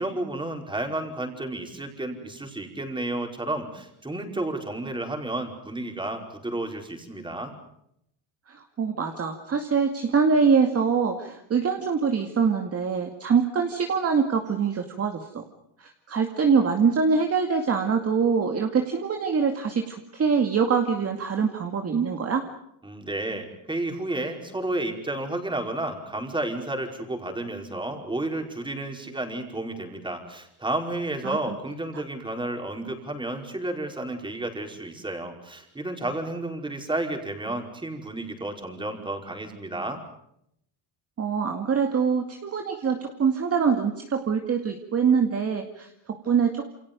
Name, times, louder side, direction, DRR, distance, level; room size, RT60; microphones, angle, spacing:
voice 1, 0.0-7.5 22.8-40.0, right 2 dB, 10° right, 3 dB, 5.0 m, -31 dB
voice 2, 8.5-15.4 15.8-22.5 31.2-31.6 41.2-46.8, right 6 dB, 30° right, 4 dB, 2.3 m, -24 dB
29.0 x 28.0 x 5.3 m, 0.76 s
cardioid pair, 155°, 50 cm